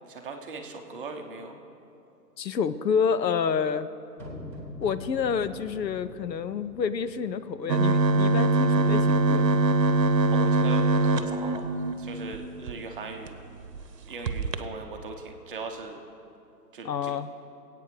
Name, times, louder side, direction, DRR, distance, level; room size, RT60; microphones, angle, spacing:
voice 1, 0.1-1.6 10.3-11.6 12.0-13.3 14.0-16.0 16.7-17.1, right 4 dB, 30° right, 3 dB, 0.9 m, -39 dB
voice 2, 2.4-3.9 4.8-9.6 16.8-17.3, left 6 dB, 80° left, 13 dB, 0.7 m, -28 dB
sound 1, 4.2-8.2, left 1 dB, 5° left, 1.0 m, -44 dB
sound 2, 7.7-12.7 13.3-13.4 13.6-13.8 14.3-14.6, right 2 dB, 75° right, 0.9 m, -23 dB
23.0 x 8.6 x 3.2 m, 2.7 s
figure-of-eight pair, 140°, 50 cm